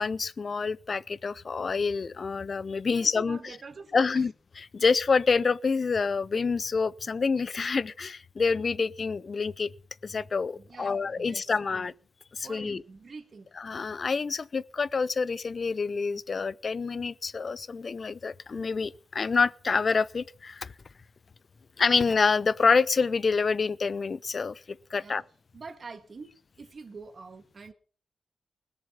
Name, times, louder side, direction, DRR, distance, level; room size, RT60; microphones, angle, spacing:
voice 1, 0.0-3.4 3.9-4.3 4.7-9.7 10.0-11.9 12.3-12.8 13.6-20.7 21.8-24.6 24.9-25.2, left 4 dB, 55° left, 0.5 m, -27 dB
voice 2, 2.9-4.3 10.5-11.9 12.4-13.5 24.9-25.3 25.5-27.7, right 4 dB, 55° right, 1.6 m, -46 dB
20.0 x 7.0 x 5.7 m
cardioid pair, 65°, 0 cm